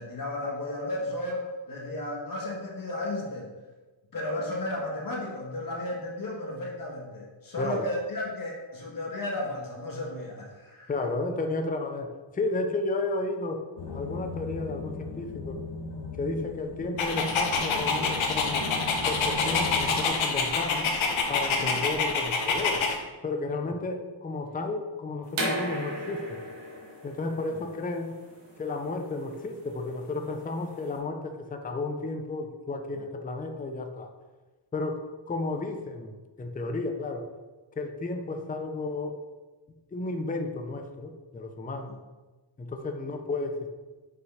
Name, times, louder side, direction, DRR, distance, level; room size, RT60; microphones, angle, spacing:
voice 1, 0.0-3.5 4.1-10.9 21.6-21.8 27.5-27.6, left 1 dB, 45° left, -2 dB, 1.6 m, -34 dB
voice 2, 7.6-7.9 10.9-15.6 16.2-18.7 19.1-21.0 21.3-22.9 23.2-26.4 27.0-28.2 28.6-34.1 34.7-36.1 36.4-37.3 37.8-39.2 39.9-42.0 42.6-43.7, left 2 dB, 20° left, 5 dB, 0.6 m, -33 dB
sound 1, 13.8-20.1, left 3 dB, 65° left, 1.3 m, -37 dB
Dog, 17.0-23.0, left 4 dB, 90° left, 1.3 m, -27 dB
sound 2, 25.3-30.9, right 1 dB, 60° right, 2.2 m, -36 dB
6.2 x 5.8 x 5.6 m, 1.2 s
wide cardioid pair, 175°, 46 cm